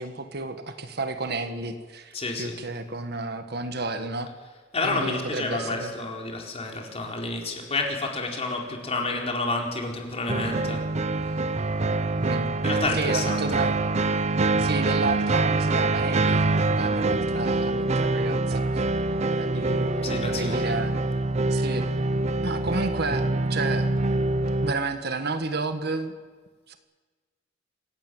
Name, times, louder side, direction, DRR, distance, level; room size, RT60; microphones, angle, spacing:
voice 1, 0.0-4.3 4.8-5.9 12.2-12.5 12.9-13.8 14.6-18.8 19.3-20.9 21.5-21.9 22.4-23.2 23.5-23.9 24.6-26.1 26.7-26.8, right 3 dB, 55° right, 8 dB, 1.6 m, -31 dB
voice 2, 2.1-2.7 4.4-10.9 12.6-13.6 20.0-20.8, left 2 dB, 35° left, 1 dB, 4.3 m, -30 dB
sound 1, 10.3-24.7, right 2 dB, 35° right, 0.8 m, -25 dB
26.5 x 16.5 x 9.4 m, 1.4 s
head